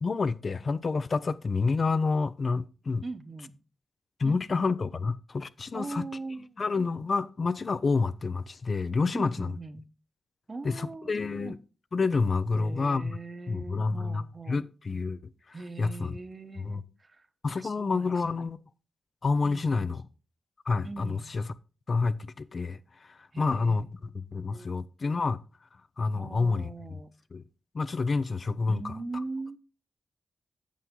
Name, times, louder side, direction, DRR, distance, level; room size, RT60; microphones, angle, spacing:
voice 1, 0.0-3.0 4.2-6.0 6.6-9.5 10.6-11.6 11.9-13.2 13.5-15.2 15.5-16.1 16.6-16.8 17.4-18.6 19.2-20.0 20.7-21.5 21.9-25.4 26.0-26.7 27.3-27.4 27.7-28.9, left 4 dB, 45° left, 0.4 m, -28 dB
voice 2, 3.0-3.6 4.2-4.7 5.7-6.7 9.1-9.9 10.5-11.5 12.5-14.6 15.5-18.5 19.4-20.0 20.8-21.3 23.3-23.9 24.3-24.8 26.2-27.1 28.7-29.6, right 3 dB, 35° right, 0.9 m, -41 dB
8.4 x 6.8 x 3.7 m
wide cardioid pair, 115°, 0 cm